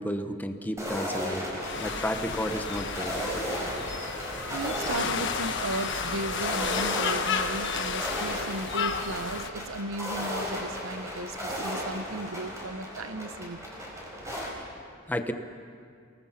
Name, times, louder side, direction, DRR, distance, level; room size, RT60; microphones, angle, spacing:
voice 1, 0.0-1.5 1.8-3.1 15.1-15.3, equal, 10° left, 6 dB, 1.0 m, -32 dB
sound 1, 0.8-14.5, equal, 15° right, 5.0 m, -35 dB
sound 2, 1.6-9.5, left 6 dB, 60° left, 1.3 m, -32 dB
Wind instrument woodwind instrument, 2.6-8.1, right 5 dB, 50° right, 2.2 m, -47 dB
voice 2, 4.5-13.6, right 2 dB, 85° right, 11 dB, 0.9 m, -35 dB
29.0 x 19.5 x 5.8 m, 2.2 s
head